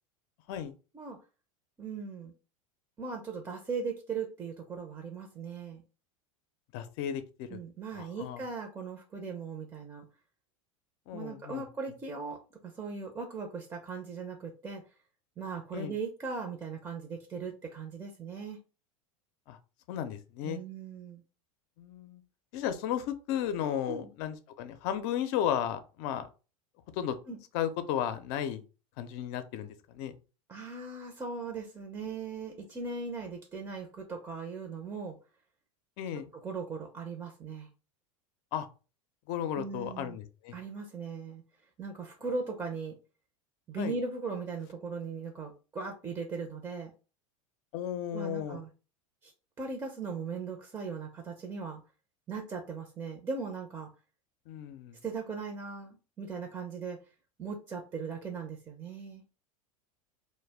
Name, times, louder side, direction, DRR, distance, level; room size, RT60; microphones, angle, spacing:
voice 1, 1.8-2.3 3.0-5.8 7.5-10.0 11.1-12.4 12.7-14.8 15.4-18.6 20.4-21.2 23.9-24.1 27.3-27.4 30.5-35.2 36.3-37.7 39.6-40.2 40.5-41.4 41.8-42.9 43.7-46.9 48.1-48.7 49.2-49.3 49.6-51.8 52.3-53.9 55.0-57.0 57.4-59.2, right 4 dB, 20° right, 2 dB, 0.6 m, -38 dB
voice 2, 6.7-7.6 7.9-8.4 11.1-11.6 15.7-15.9 19.5-19.6 19.9-20.6 21.8-22.2 22.5-26.3 26.9-27.2 27.5-28.6 29.0-30.2 36.0-36.3 38.5-38.7 39.3-40.6 43.8-43.9 47.7-48.6 54.5-55.0, left 10 dB, 55° left, 10 dB, 0.5 m, -34 dB
2.3 x 2.1 x 3.3 m, 0.33 s
hypercardioid pair, 100°, 18 cm